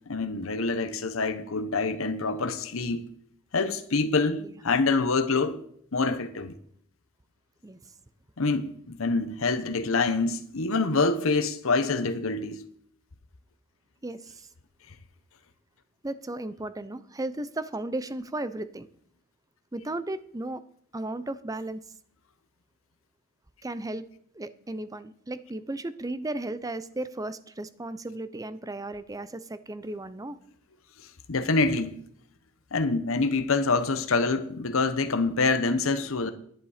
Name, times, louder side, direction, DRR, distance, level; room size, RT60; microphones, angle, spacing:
voice 1, 0.1-3.0 3.5-5.6 5.9-6.5 8.4-12.7 31.3-31.9 32.7-36.3, left 3 dB, 70° left, 0.9 m, -26 dB
voice 2, 14.0-14.5 16.0-18.9 19.7-20.6 20.9-21.8 23.6-24.0 24.3-30.4, right 2 dB, 15° right, 0.6 m, -35 dB
11.0 x 10.0 x 5.0 m
head